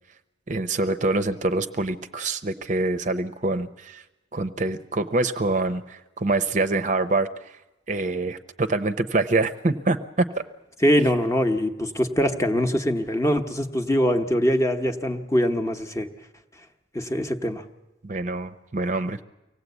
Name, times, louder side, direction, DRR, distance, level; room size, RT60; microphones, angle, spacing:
voice 1, 0.5-4.0 4.3-7.3 7.9-10.3 18.0-19.2, right 2 dB, 40° right, 9 dB, 0.7 m, -25 dB
voice 2, 10.8-16.1 16.9-17.6, equal, 15° left, 5 dB, 0.9 m, -23 dB
24.5 x 17.5 x 8.1 m, 1.0 s
head